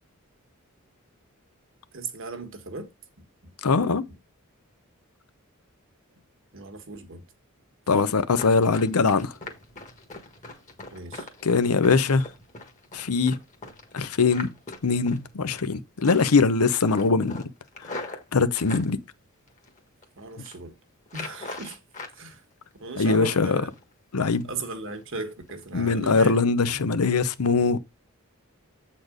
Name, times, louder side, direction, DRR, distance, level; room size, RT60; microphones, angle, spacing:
voice 1, 1.9-2.9 3.4-3.5 4.1-4.2 6.5-7.2 10.9-11.3 20.2-20.8 21.1-21.8 22.1-22.4 22.8-23.7 24.4-26.4, right 3 dB, 60° right, 1.4 m, -37 dB
voice 2, 3.6-4.1 7.9-9.3 11.4-12.3 12.9-13.4 13.9-14.5 14.8-17.4 17.9-18.0 18.3-19.0 23.0-23.6 24.1-24.5 25.7-27.8, left 4 dB, 85° left, 0.7 m, -22 dB
Run, 8.3-15.7 16.0-16.4 16.7-18.9 19.5-20.0 20.3-20.6 21.1-22.2 22.5-23.3 23.7-23.8 24.2-24.6 24.9-25.0 25.5-25.6 26.0-26.1, left 2 dB, 35° left, 1.6 m, -41 dB
8.0 x 4.3 x 5.1 m
head